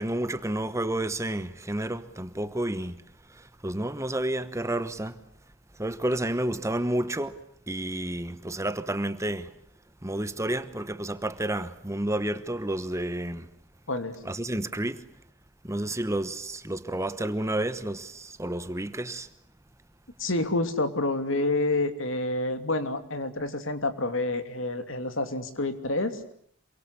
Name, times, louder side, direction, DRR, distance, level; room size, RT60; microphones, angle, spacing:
voice 1, 0.0-3.0 3.3-5.2 5.8-7.4 7.7-9.5 10.0-13.5 14.2-15.0 15.6-19.3, right 1 dB, 15° right, 1.1 m, -30 dB
voice 2, 20.2-26.2, left 2 dB, 70° left, 2.9 m, -28 dB
27.5 x 24.0 x 8.4 m
head